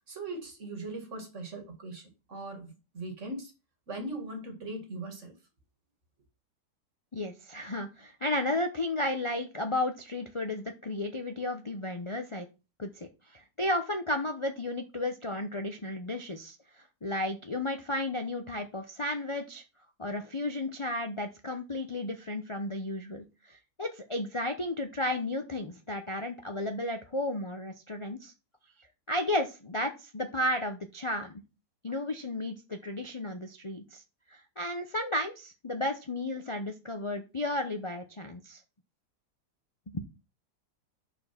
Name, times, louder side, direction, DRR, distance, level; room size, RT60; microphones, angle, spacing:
voice 1, 0.1-3.5 3.9-5.3, right 2 dB, 45° right, 2.2 m, -40 dB
voice 2, 7.1-12.5 12.8-19.6 20.0-28.3 29.1-31.4 31.8-34.0 34.3-38.6 39.9-40.1, left 1 dB, 40° left, 0.4 m, -33 dB
5.5 x 4.5 x 5.9 m
omnidirectional pair, 1.7 m